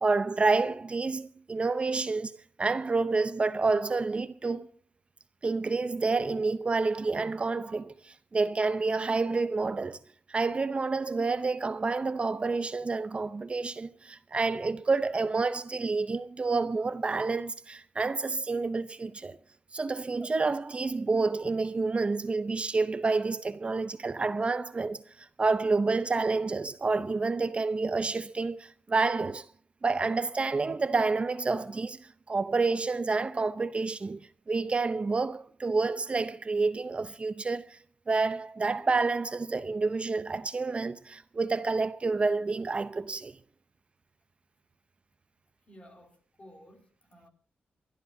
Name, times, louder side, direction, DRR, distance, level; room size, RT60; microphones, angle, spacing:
voice 1, 0.0-4.7 5.4-10.0 10.3-19.4 19.7-29.5 29.8-34.2 34.5-37.8 38.1-43.3, right 3 dB, 30° right, 0.6 m, -29 dB
voice 2, 45.7-47.3, equal, 35° left, 3.6 m, -54 dB
28.5 x 12.5 x 2.7 m
cardioid pair, 105°, 4 cm